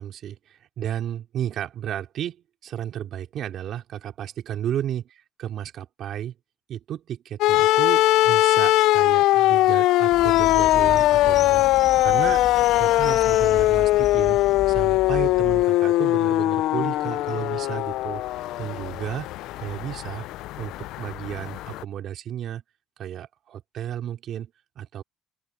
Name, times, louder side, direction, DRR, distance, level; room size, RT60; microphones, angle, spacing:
voice 1, 0.0-6.3 6.7-12.5 12.8-19.3 19.6-20.2 20.6-22.6 23.0-25.0, right 10 dB, 65° right, 3.9 m, -33 dB
sound 1, 7.4-21.8, left 16 dB, 85° left, 0.4 m, -21 dB
sound 2, 10.1-15.7, left 6 dB, 40° left, 1.9 m, -36 dB
open air
cardioid pair, 110°, 0 cm